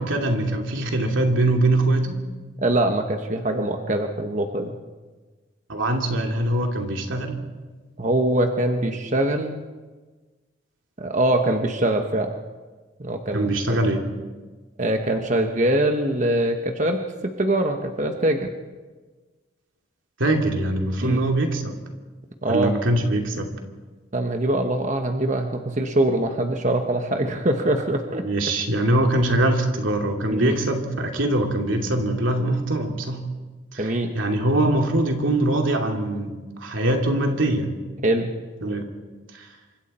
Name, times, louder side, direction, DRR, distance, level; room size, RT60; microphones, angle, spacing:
voice 1, 0.0-2.2 5.7-7.4 13.3-14.0 20.2-21.8 22.5-23.5 28.2-33.2 33.7-37.7 38.6-38.8 39.3-39.5, right 1 dB, 85° right, 2 dB, 2.9 m, -23 dB
voice 2, 2.6-4.7 8.0-9.6 11.0-12.4 13.0-13.8 14.8-18.5 21.0-21.2 22.4-22.7 24.1-28.2 30.3-30.5 33.8-34.2 38.0-38.4, right 1 dB, 40° right, 4 dB, 1.3 m, -23 dB
27.5 x 25.0 x 4.4 m, 1.3 s
head